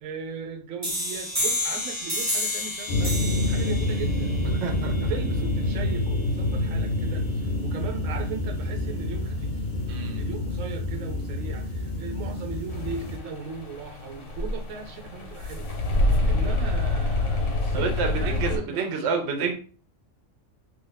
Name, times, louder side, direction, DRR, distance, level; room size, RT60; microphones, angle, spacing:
voice 1, 0.0-4.3 5.0-9.6 10.2-15.7 16.1-19.2, right 6 dB, 85° right, 3 dB, 1.0 m, -38 dB
sound 1, 0.8-6.2, left 1 dB, 15° right, 0.6 m, -31 dB
sound 2, 2.9-13.2, left 1 dB, 55° left, 0.9 m, -27 dB
voice 2, 4.6-5.1 9.9-10.2 17.7-19.5, right 5 dB, 60° right, 4 dB, 0.9 m, -28 dB
sound 3, 12.7-18.6, left 2 dB, 70° left, 1.2 m, -27 dB
2.6 x 2.5 x 3.9 m, 0.41 s
omnidirectional pair, 1.3 m